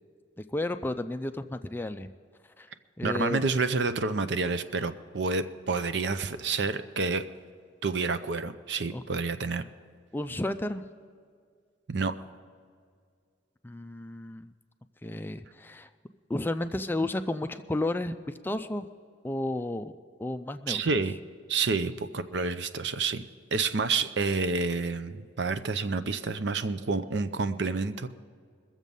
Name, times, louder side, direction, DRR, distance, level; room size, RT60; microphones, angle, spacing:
voice 1, 0.5-2.1 2.6-2.7 3.0-3.4 8.9-9.0 10.1-10.8 13.6-14.5 15.0-15.9 16.3-18.9 19.2-19.9 20.2-20.8, left 1 dB, 10° left, 9 dB, 0.3 m, -32 dB
voice 2, 3.0-7.2 7.8-9.6 11.9-12.2 20.7-21.1 21.5-23.2 23.5-28.1, right 4 dB, 60° right, 11 dB, 0.6 m, -29 dB
22.0 x 7.3 x 5.4 m, 2.1 s
head